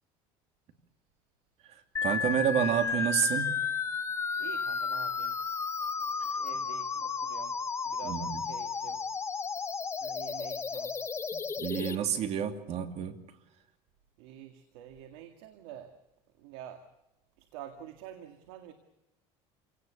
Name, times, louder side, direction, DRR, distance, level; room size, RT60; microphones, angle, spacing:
voice 1, 1.7-3.5 8.0-8.4 11.3-13.2, right 9 dB, 50° right, 7 dB, 2.7 m, -30 dB
sound 1, 2.0-12.0, left 5 dB, 20° left, 1.0 m, -33 dB
voice 2, 4.4-5.4 6.1-7.6 7.8-9.0 10.0-11.0 14.2-15.9 16.4-16.8 17.4-18.7, right 10 dB, 85° right, 7 dB, 2.1 m, -48 dB
27.5 x 18.0 x 7.0 m, 0.91 s
cardioid pair, 130°, 14 cm